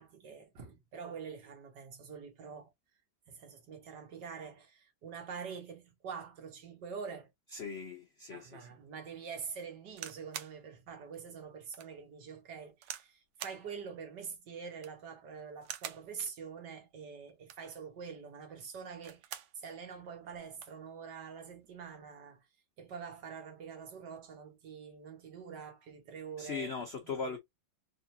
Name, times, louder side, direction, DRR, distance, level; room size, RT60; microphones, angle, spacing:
voice 1, 0.0-2.7 3.3-7.3 8.3-22.5 22.8-26.7 27.0-27.4, right 6 dB, 60° right, 1.7 m, -45 dB
voice 2, 7.5-8.7 26.4-27.4, left 5 dB, 80° left, 0.5 m, -39 dB
sound 1, 9.9-10.6 11.1-11.2 11.7-11.9 12.8-13.1 13.4-13.6 14.7-15.1 15.6-16.1 17.3-17.7 18.9-19.6 20.0-20.1 20.3-20.8 21.6-21.9, right 11 dB, 80° right, 1.4 m, -45 dB
3.7 x 3.4 x 2.6 m
omnidirectional pair, 2.1 m